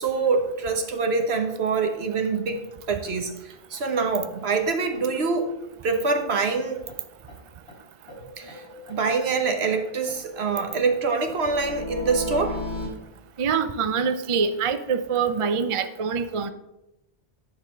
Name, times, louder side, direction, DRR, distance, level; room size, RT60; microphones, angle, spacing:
voice 1, 0.0-5.5 5.8-6.9 8.4-8.6 8.9-12.6, right 4 dB, 70° right, 5 dB, 1.3 m, -25 dB
sound 1, 6.5-6.6 6.9-7.0 7.3-7.4 7.7-7.8 8.1-9.4 9.7-12.9, left 1 dB, 70° left, 4.0 m, -36 dB
voice 2, 13.4-16.5, right 6 dB, 40° right, 10 dB, 0.4 m, -25 dB
10.5 x 4.2 x 6.3 m, 0.90 s
omnidirectional pair, 1.1 m